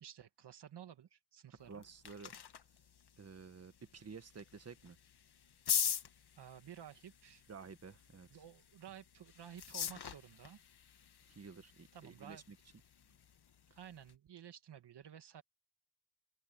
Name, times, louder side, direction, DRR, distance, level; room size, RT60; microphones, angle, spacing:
voice 1, 0.0-1.8 5.9-6.0 6.4-7.4 8.3-10.6 11.9-12.4 13.7-15.4, right 9 dB, 65° right, 1.8 m, -53 dB
sound 1, 1.6-14.2, left 8 dB, 60° left, 1.9 m, -44 dB
voice 2, 1.6-2.3 3.2-5.0 7.5-8.3 11.3-12.6 13.7-13.8, right 5 dB, 35° right, 1.7 m, -52 dB
open air
cardioid pair, 90°, 44 cm